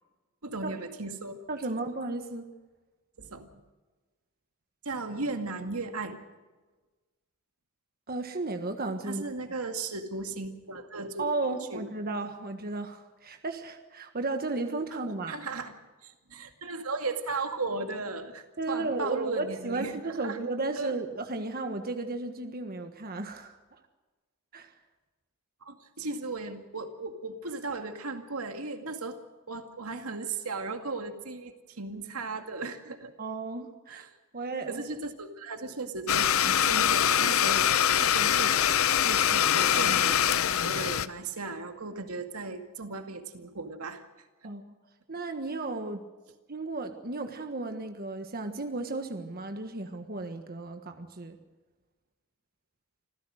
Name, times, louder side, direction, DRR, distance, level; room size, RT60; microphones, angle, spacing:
voice 1, 0.4-1.4 3.2-3.6 4.8-6.2 9.1-11.3 11.7-11.8 15.3-15.7 16.0-20.4 20.8-20.9 25.6-29.2 29.5-33.1 33.9-34.1 34.7-38.6 39.0-40.2 40.6-44.0, right 3 dB, 90° right, 6 dB, 2.2 m, -36 dB
voice 2, 1.5-2.4 8.1-9.3 11.2-15.4 18.6-23.8 24.5-24.7 33.2-34.0 34.3-34.8 44.4-44.7 45.1-46.0 46.5-51.4, right 3 dB, 45° right, 6 dB, 1.5 m, -34 dB
Domestic sounds home sounds, 36.1-41.1, left 9 dB, 70° left, 0.8 m, -24 dB
26.5 x 15.5 x 6.4 m, 1.2 s
head